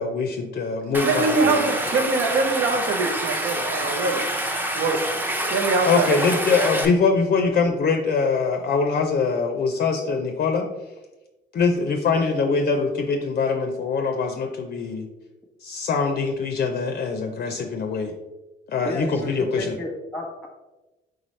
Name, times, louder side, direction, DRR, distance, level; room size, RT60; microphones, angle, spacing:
voice 1, 0.0-1.7 5.8-10.7 11.5-15.1 15.6-18.1 18.7-19.8, left 4 dB, 45° left, 4 dB, 0.5 m, -23 dB
Stream, 0.9-6.9, right 1 dB, 10° right, 0.6 m, -27 dB
voice 2, 1.0-4.2 4.7-5.0 5.5-6.2, right 4 dB, 75° right, 5 dB, 0.7 m, -23 dB
voice 3, 18.8-20.5, left 1 dB, 10° left, 3 dB, 0.9 m, -33 dB
4.1 x 3.7 x 3.1 m, 1.1 s
cardioid pair, 90°, 20 cm